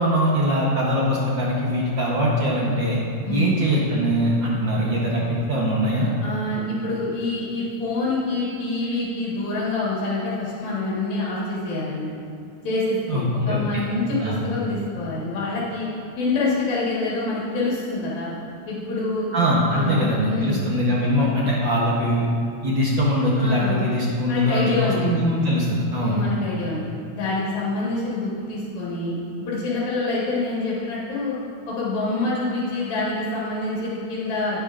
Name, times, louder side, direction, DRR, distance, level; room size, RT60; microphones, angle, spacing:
voice 1, 0.0-3.0 3.3-5.2 5.5-6.1 13.1-13.8 14.2-14.4 19.3-22.3 22.6-26.2, equal, 70° right, -5 dB, 1.1 m, -22 dB
voice 2, 6.2-12.1 12.6-15.9 16.2-18.3 18.7-19.3 19.7-20.7 21.2-21.3 23.4-23.9 24.3-25.4 26.0-26.9 27.1-29.1 29.4-31.3 31.7-34.6, left 2 dB, 70° left, -7 dB, 2.8 m, -26 dB
12.0 x 8.5 x 2.5 m, 2.5 s
omnidirectional pair, 3.4 m